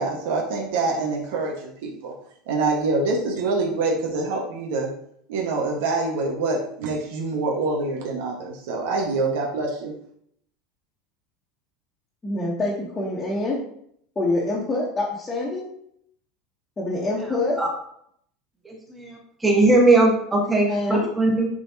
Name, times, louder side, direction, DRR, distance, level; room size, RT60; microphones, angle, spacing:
voice 1, 0.0-2.1 2.5-4.9 5.3-9.9, right 3 dB, 80° right, -1 dB, 1.6 m, -25 dB
voice 2, 12.2-13.6 14.1-15.6 16.8-17.6 20.7-21.0, left 2 dB, 15° left, -8 dB, 1.4 m, -25 dB
voice 3, 18.6-19.1 19.4-21.5, right 2 dB, 10° right, -1 dB, 1.6 m, -19 dB
10.5 x 4.2 x 2.9 m, 0.67 s
supercardioid pair, 170°, 0 cm